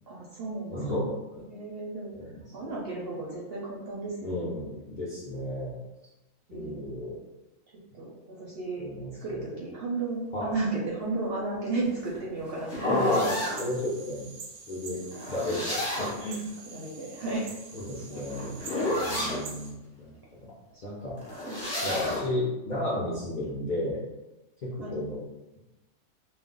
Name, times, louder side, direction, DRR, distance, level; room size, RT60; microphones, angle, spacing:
voice 1, 0.1-0.8 1.5-4.3 6.5-6.9 7.9-13.0 15.0-15.2 16.7-17.5 18.1-18.3 19.1-19.3 20.7-20.8 21.5-21.6 22.0-22.2 24.8-25.0, right 3 dB, 60° right, -5 dB, 0.6 m, -34 dB
voice 2, 0.7-1.4 2.1-2.7 4.2-5.8 6.5-7.2 8.8-9.4 10.3-10.5 12.8-13.3 13.6-14.3 14.7-16.4 17.7-18.5 18.8-20.5 20.8-21.2 21.8-24.0 24.6-25.2, left 1 dB, 55° left, -8 dB, 0.5 m, -33 dB
sound 1, 11.8-13.6 15.1-16.3 17.7-19.4 21.2-22.3, left 1 dB, 35° left, 0.9 m, -31 dB
sound 2, 13.2-19.7, right 4 dB, 90° right, 1.1 m, -46 dB
2.4 x 2.0 x 3.7 m, 0.99 s
omnidirectional pair, 1.4 m